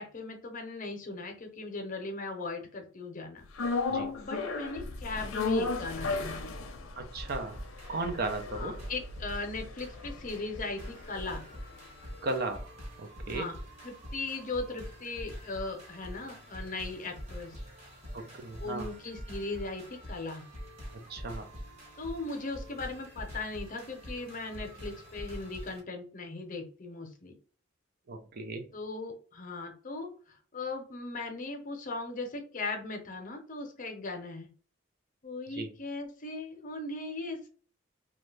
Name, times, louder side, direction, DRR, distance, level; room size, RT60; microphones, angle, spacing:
voice 1, 0.0-3.4 4.2-6.6 8.5-11.4 13.3-13.5 13.8-17.6 18.6-20.4 22.0-27.3 28.7-34.5 35.2-37.5, left 3 dB, 40° left, 3 dB, 0.7 m, -38 dB
sound 1, 3.6-11.9 12.1-12.2, left 3 dB, 85° left, 0.5 m, -36 dB
voice 2, 7.0-7.6 7.9-8.7 12.2-13.5 18.1-18.9 20.9-21.5 28.1-28.7 35.6-35.7, right 3 dB, 50° right, 6 dB, 0.5 m, -36 dB
sound 2, 7.2-25.8, equal, 35° right, 1.3 m, -45 dB
2.6 x 2.3 x 3.2 m, 0.43 s
head